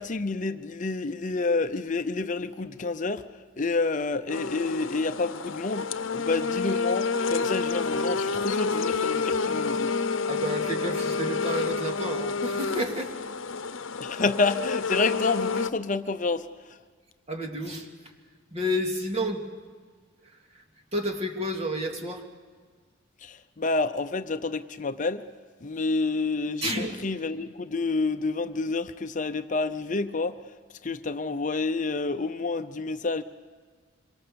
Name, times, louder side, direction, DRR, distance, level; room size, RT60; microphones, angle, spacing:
voice 1, 0.0-3.3 3.6-9.9 14.0-16.8 23.2-25.2 25.6-30.4 30.8-33.2, left 3 dB, 40° left, 9 dB, 0.7 m, -29 dB
sound 1, 4.3-15.7, left 4 dB, 90° left, 0.8 m, -29 dB
voice 2, 10.3-13.1 17.3-18.1 18.5-19.5 20.2-20.6 20.9-22.2 26.6-27.0, equal, 30° right, 2 dB, 2.6 m, -31 dB
26.5 x 24.0 x 7.0 m, 1.5 s
head